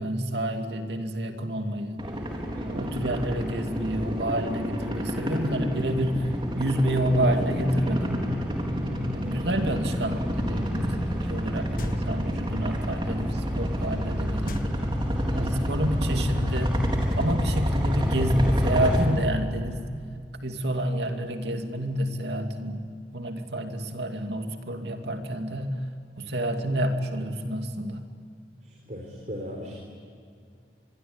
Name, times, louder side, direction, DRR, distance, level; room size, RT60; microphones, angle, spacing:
voice 1, 0.0-2.1 2.6-6.3 6.6-8.3 9.1-14.9 15.3-16.8 17.2-19.9 20.4-22.8 23.1-25.8 26.2-28.0, right 1 dB, 75° right, 5 dB, 2.5 m, -28 dB
sound 1, 2.0-19.0, equal, 30° right, 4.1 m, -28 dB
voice 2, 8.8-9.2 15.4-15.9 28.6-29.8, left 1 dB, 45° right, 0 dB, 4.1 m, -37 dB
sound 2, 11.8-12.4 14.5-15.5, left 1 dB, 55° left, 1.4 m, -37 dB
26.0 x 22.5 x 9.6 m, 2.2 s
head